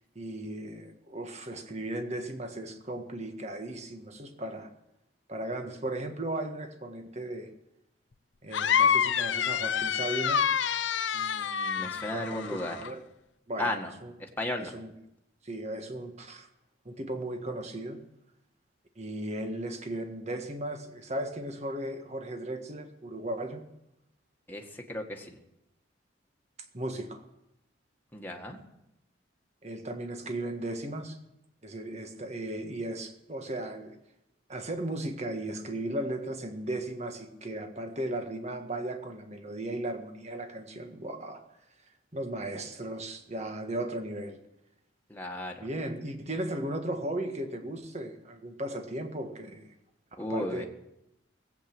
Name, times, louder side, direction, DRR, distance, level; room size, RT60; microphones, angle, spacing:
voice 1, 0.1-4.7 5.3-7.5 8.4-10.4 11.8-13.0 13.5-13.7 14.0-14.1 14.6-14.9 15.4-16.5 16.8-18.0 19.0-23.6 26.7-27.2 29.6-31.2 31.6-33.9 34.5-41.4 42.1-44.4 45.6-49.7 50.3-50.7, right 1 dB, 35° right, 5 dB, 1.6 m, -36 dB
sound 1, 8.5-12.9, left 8 dB, 75° left, 0.6 m, -27 dB
voice 2, 11.1-12.8 13.6-13.9 14.2-14.7 24.5-25.4 28.1-28.6 45.1-45.6 50.2-50.7, left 1 dB, 10° left, 1 dB, 1.8 m, -35 dB
20.0 x 8.7 x 6.1 m, 0.85 s
head